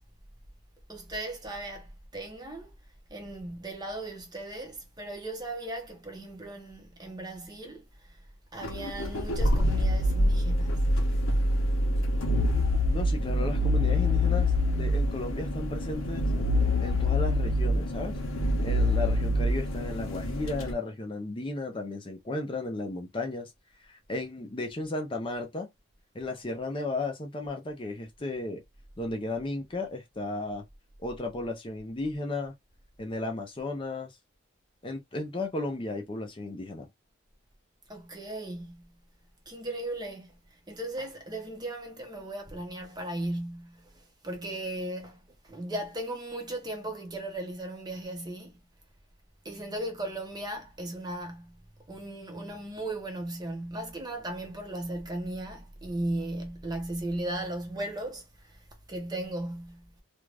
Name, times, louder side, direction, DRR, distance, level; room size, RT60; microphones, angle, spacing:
voice 1, 0.9-2.7 3.1-8.2 8.5-10.9 37.9-38.9 39.5-40.4 40.7-48.6 49.4-51.6 51.9-60.0, right 1 dB, 20° right, 0.6 m, -37 dB
sound 1, 8.6-20.7, left 1 dB, 80° left, 0.8 m, -26 dB
voice 2, 12.9-16.3 16.8-18.2 18.6-23.5 23.8-25.7 26.1-28.6 29.0-30.6 31.0-32.5 33.0-34.2 34.8-36.9, left 2 dB, 25° left, 0.5 m, -34 dB
2.5 x 2.3 x 3.2 m
head